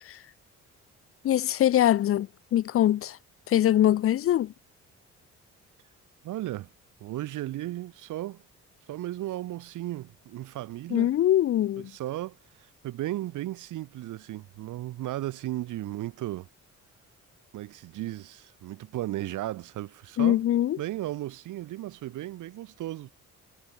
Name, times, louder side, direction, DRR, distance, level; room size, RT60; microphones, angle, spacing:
voice 1, 1.2-3.2 3.5-4.5 10.9-11.9 20.2-20.8, left 12 dB, 50° left, 0.5 m, -23 dB
voice 2, 6.2-6.7 7.0-8.4 8.9-11.1 11.8-16.5 17.5-20.4 20.8-23.1, right 15 dB, 85° right, 1.9 m, -35 dB
cardioid pair, 90°, 30 cm